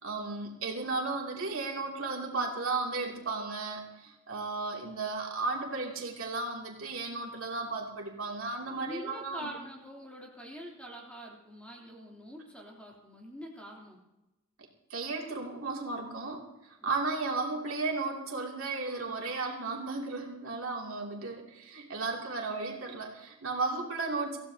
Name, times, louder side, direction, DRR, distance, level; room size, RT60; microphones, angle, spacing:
voice 1, 0.0-9.5 14.9-24.4, right 3 dB, 85° right, -1 dB, 2.9 m, -34 dB
voice 2, 8.8-14.0 16.8-17.0, equal, 5° left, -2 dB, 3.2 m, -45 dB
24.5 x 16.0 x 2.9 m, 0.99 s
head